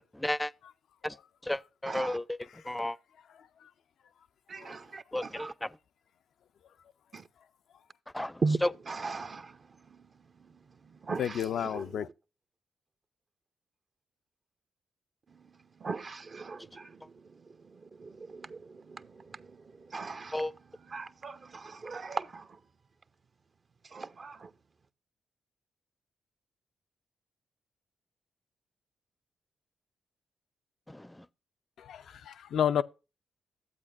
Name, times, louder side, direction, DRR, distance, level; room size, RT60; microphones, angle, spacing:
voice 1, 0.1-0.5 1.0-1.2 1.4-2.4 2.7-3.0 5.1-5.7 8.1-8.7 20.3-20.5 30.9-31.2, left 1 dB, 10° left, 0.5 m, -33 dB
voice 2, 1.9-2.2 4.5-5.5 7.1-7.2 8.4-9.6 9.9-10.0 11.0-11.4 11.7-11.8 15.8-17.1 17.7-20.4 20.9-22.5 23.9-24.5, right 4 dB, 50° right, 0.7 m, -38 dB
voice 3, 3.4-3.7 4.6-4.8 11.2-12.1 31.8-32.8, left 9 dB, 75° left, 0.3 m, -32 dB
12.0 x 8.2 x 2.5 m
supercardioid pair, 45°, 0 cm